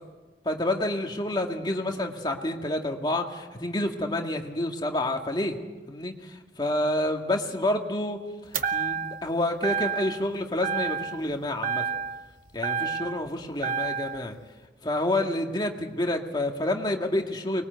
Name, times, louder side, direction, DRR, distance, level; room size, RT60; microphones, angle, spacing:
voice 1, 0.4-5.6 5.9-11.8 12.5-14.4 14.8-17.6, left 1 dB, 25° left, 3 dB, 2.0 m, -29 dB
sound 1, 8.5-9.3 9.6-10.3 10.6-11.3 11.6-13.3 13.6-14.2, right 6 dB, 45° right, 1.0 m, -30 dB
24.5 x 21.0 x 8.0 m, 1.3 s
head